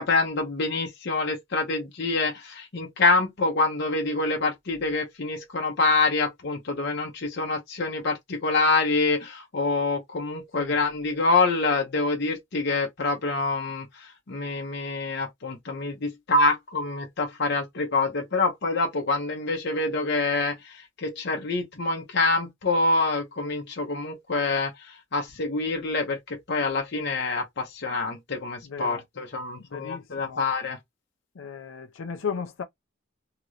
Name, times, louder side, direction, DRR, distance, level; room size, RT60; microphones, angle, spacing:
voice 1, 0.0-30.8, left 3 dB, 60° left, 0.8 m, -26 dB
voice 2, 28.6-29.0 29.6-30.4 31.3-32.6, left 6 dB, 80° left, 0.5 m, -35 dB
2.9 x 2.5 x 3.1 m
head